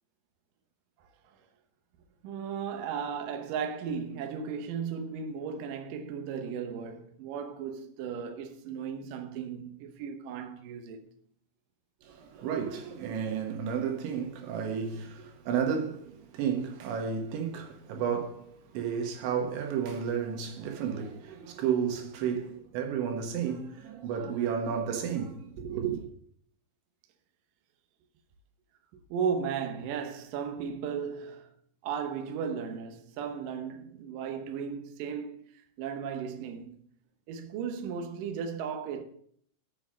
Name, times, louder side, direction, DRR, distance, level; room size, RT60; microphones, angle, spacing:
voice 1, 2.2-11.0 16.9-17.0 29.1-31.5 31.8-35.5 35.8-36.8 37.3-39.0, right 6 dB, 70° right, 2.1 m, -35 dB
voice 2, 12.0-26.1, right 7 dB, 90° right, 3.8 m, -32 dB
7.1 x 6.9 x 7.3 m
omnidirectional pair, 5.1 m